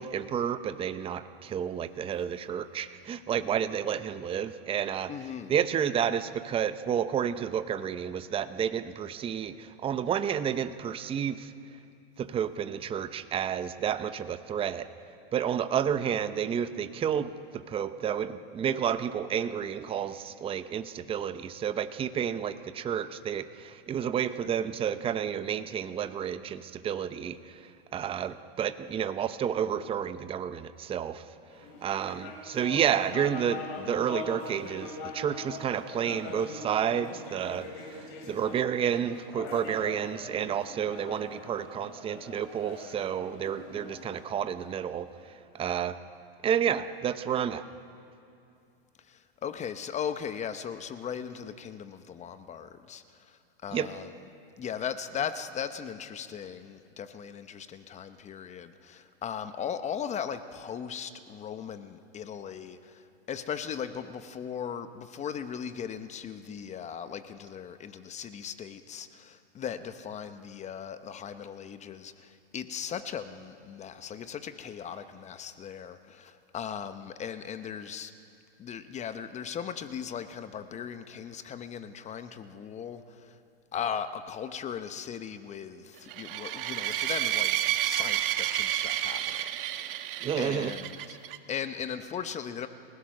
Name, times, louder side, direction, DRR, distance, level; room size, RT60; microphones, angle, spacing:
voice 1, 0.0-5.1 5.5-11.5 12.2-14.9 15.3-27.4 27.9-31.2 31.8-37.7 38.3-45.1 45.5-46.0 46.4-47.6 53.7-53.9 90.2-90.7, right 8 dB, 20° right, 12 dB, 0.7 m, -30 dB
voice 2, 5.1-5.6 33.8-34.0 49.1-54.1 54.6-78.1 78.6-83.4 83.7-89.4 89.7-90.0 90.4-91.2 91.5-92.7, left 8 dB, 25° left, 10 dB, 0.8 m, -38 dB
sound 1, 31.5-45.2, left 3 dB, 55° left, 6.2 m, -43 dB
sound 2, 86.1-91.4, right 13 dB, 60° right, 1.4 m, -30 dB
30.0 x 16.0 x 6.6 m, 2.6 s
hypercardioid pair, 125°, 30 cm